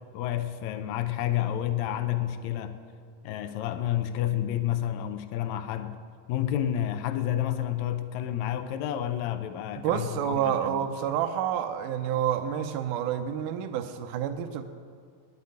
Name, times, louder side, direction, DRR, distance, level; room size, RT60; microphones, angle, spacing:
voice 1, 0.1-2.8 3.2-6.0 6.3-10.8, left 11 dB, 75° left, 1.7 m, -30 dB
voice 2, 9.8-14.6, right 9 dB, 75° right, 2.2 m, -29 dB
10.0 x 8.5 x 9.4 m
omnidirectional pair, 3.9 m